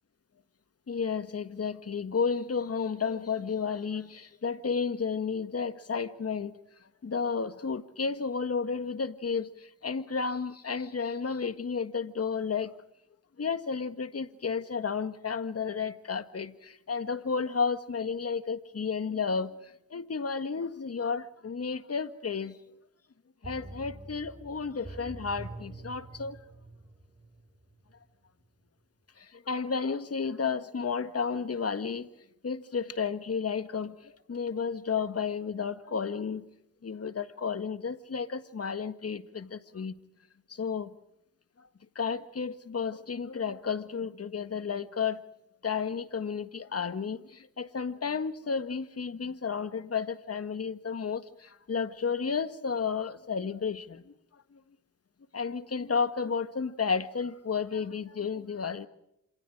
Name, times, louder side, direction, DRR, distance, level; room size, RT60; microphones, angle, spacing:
voice 1, 0.9-6.5 7.0-9.5 9.8-12.7 13.4-19.5 19.9-22.6 23.4-26.4 29.5-32.1 32.4-33.9 34.3-36.4 36.8-39.9 40.5-40.9 42.0-45.2 45.6-47.2 47.6-51.2 51.7-54.0 55.3-58.9, left 5 dB, 45° left, 1.8 m, -32 dB
sound 1, 23.4-28.1 28.4-28.5, right 2 dB, 20° right, 5.6 m, -46 dB
27.5 x 27.5 x 4.9 m
cardioid pair, 65°, 34 cm